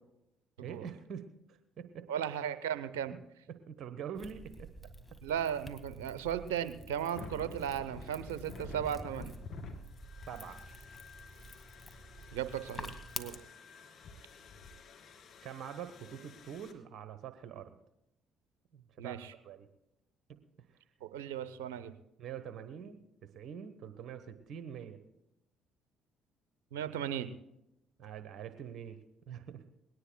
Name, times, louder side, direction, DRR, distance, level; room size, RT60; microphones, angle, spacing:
voice 1, 0.6-2.0 3.5-4.7 10.3-10.6 15.4-17.7 18.7-19.2 19.4-19.7 20.3-20.4 22.2-25.0 28.0-29.0 29.3-29.6, right 8 dB, 60° right, 10 dB, 1.1 m, -45 dB
voice 2, 2.1-3.1 5.2-9.3 12.3-13.4 19.0-19.3 21.0-21.9 26.7-27.3, right 9 dB, 80° right, 12 dB, 0.7 m, -36 dB
sound 1, 4.1-13.4, equal, 10° left, 1.8 m, -49 dB
sound 2, 7.2-16.7, left 3 dB, 60° left, 2.2 m, -49 dB
21.5 x 18.0 x 2.3 m, 0.86 s
hypercardioid pair, 50°, 0 cm